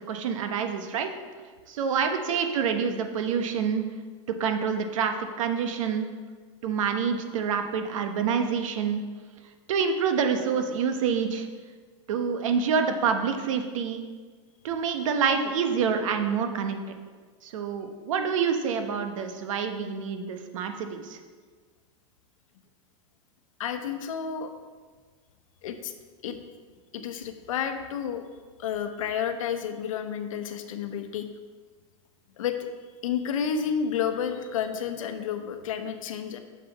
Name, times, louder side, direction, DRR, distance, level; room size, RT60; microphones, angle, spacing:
voice 1, 0.1-1.1 1.7-3.8 4.3-6.1 6.6-9.0 9.7-11.5 12.1-14.0 14.6-16.8 17.4-21.2, right 6 dB, 80° right, 6 dB, 1.0 m, -27 dB
voice 2, 23.6-24.5 25.6-25.9 26.2-26.4 26.9-28.2 28.6-31.3 32.4-32.6 33.0-36.4, left 7 dB, 85° left, 7 dB, 0.8 m, -30 dB
7.7 x 6.6 x 4.0 m, 1.5 s
supercardioid pair, 140°, 17 cm